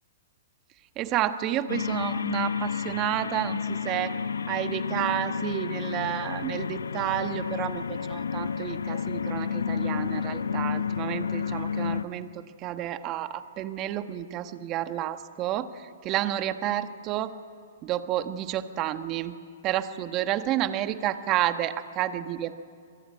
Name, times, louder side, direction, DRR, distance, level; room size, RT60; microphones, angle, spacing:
voice 1, 1.0-4.2 4.5-17.3 17.8-19.4 19.6-22.6, right 12 dB, 35° right, 9 dB, 1.4 m, -30 dB
sound 1, 1.7-12.0, left 6 dB, 85° left, 0.9 m, -31 dB
25.5 x 22.0 x 9.6 m, 2.2 s
hypercardioid pair, 125°, 0 cm